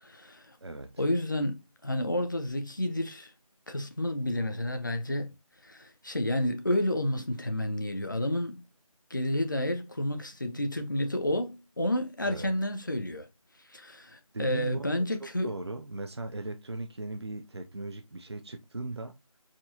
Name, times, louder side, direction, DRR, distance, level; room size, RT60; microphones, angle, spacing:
voice 1, 0.0-0.6 1.0-1.5 1.8-3.3 3.7-5.3 5.6-8.6 9.1-13.3 13.7-15.5, left 1 dB, 35° left, 0.6 m, -30 dB
voice 2, 0.6-1.0 12.2-12.5 14.3-14.9 15.2-19.2, right 2 dB, 45° right, 0.5 m, -38 dB
4.4 x 4.3 x 2.7 m
figure-of-eight pair, 170°, 19 cm